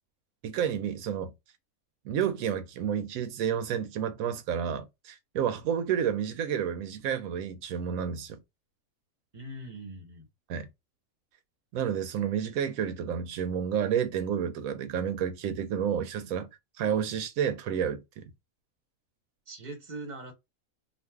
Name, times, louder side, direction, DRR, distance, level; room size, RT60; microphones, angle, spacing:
voice 1, 0.4-1.3 2.0-8.4 10.5-10.7 11.7-16.5 16.8-18.3, right 8 dB, 85° right, 1.0 m, -30 dB
voice 2, 9.3-10.3 19.5-20.3, right 2 dB, 35° right, 1.1 m, -41 dB
2.5 x 2.4 x 3.4 m
omnidirectional pair, 1.4 m